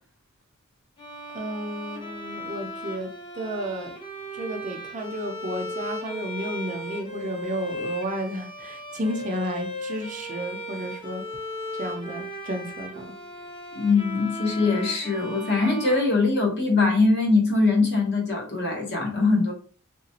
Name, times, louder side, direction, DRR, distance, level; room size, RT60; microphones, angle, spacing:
Bowed string instrument, 1.0-16.8, left 1 dB, 20° left, 0.8 m, -37 dB
voice 1, 1.3-4.0 4.3-11.2 11.8-13.1, equal, 35° right, 0.6 m, -32 dB
voice 2, 13.7-19.5, left 3 dB, 50° left, 1.0 m, -22 dB
3.2 x 3.0 x 2.8 m
head